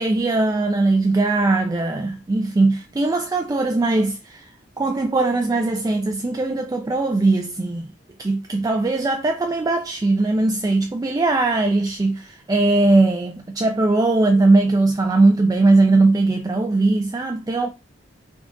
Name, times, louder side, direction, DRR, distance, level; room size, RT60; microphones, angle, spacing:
voice 1, 0.0-7.9 8.2-17.7, right 2 dB, 20° right, 0.3 m, -20 dB
3.5 x 2.4 x 3.7 m
head